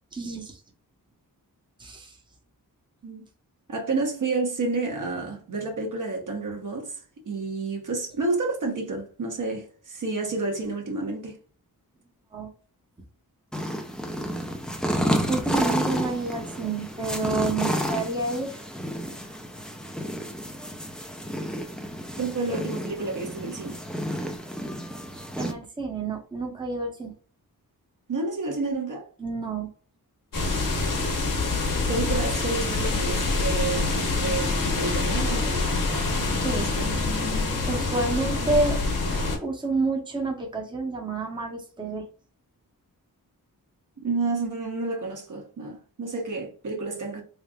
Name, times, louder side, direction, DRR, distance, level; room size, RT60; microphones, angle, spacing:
voice 1, 0.1-0.6 1.8-2.2 12.3-12.5 15.3-18.6 25.4-27.1 29.2-29.7 36.4-36.7 37.7-38.8 39.4-42.1, right 3 dB, 15° right, 0.9 m, -29 dB
voice 2, 3.7-7.0 7.2-11.4 22.2-23.8 28.1-29.1 30.8-31.3 31.9-35.8 36.7-37.0 44.0-47.2, right 3 dB, 60° right, 1.2 m, -30 dB
sound 1, 13.5-25.5, equal, ahead, 0.6 m, -31 dB
sound 2, 30.3-39.4, left 3 dB, 65° left, 1.1 m, -26 dB
3.9 x 3.3 x 2.4 m
wide cardioid pair, 85°, 36 cm